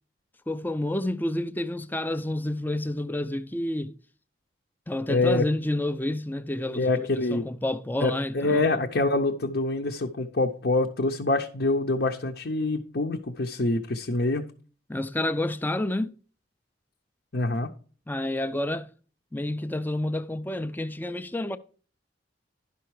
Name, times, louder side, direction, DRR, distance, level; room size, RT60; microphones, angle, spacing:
voice 1, 0.5-3.9 4.9-8.7 14.9-16.1 18.1-18.9 19.3-21.6, left 1 dB, 10° left, 0.5 m, -29 dB
voice 2, 5.1-5.4 6.8-7.4 8.0-14.5 17.3-17.7, left 2 dB, 55° left, 0.7 m, -25 dB
11.0 x 5.7 x 4.7 m
head